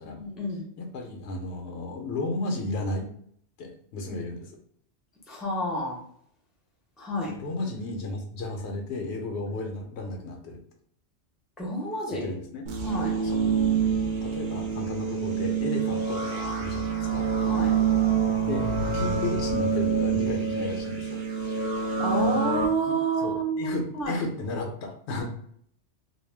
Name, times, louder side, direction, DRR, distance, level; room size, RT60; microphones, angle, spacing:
voice 1, 0.0-0.6 5.3-6.0 7.0-7.3 11.6-12.3 12.9-13.1 17.4-17.7 22.0-24.2, right 2 dB, ahead, -2 dB, 0.5 m, -29 dB
voice 2, 0.8-3.1 3.6-4.5 7.3-10.6 12.1-12.6 13.2-13.4 14.2-17.2 18.5-21.2 23.2-25.3, left 2 dB, 75° left, 3 dB, 0.8 m, -33 dB
sound 1, 12.7-22.7, right 6 dB, 60° right, 0.5 m, -26 dB
2.3 x 2.1 x 3.2 m, 0.66 s
omnidirectional pair, 1.2 m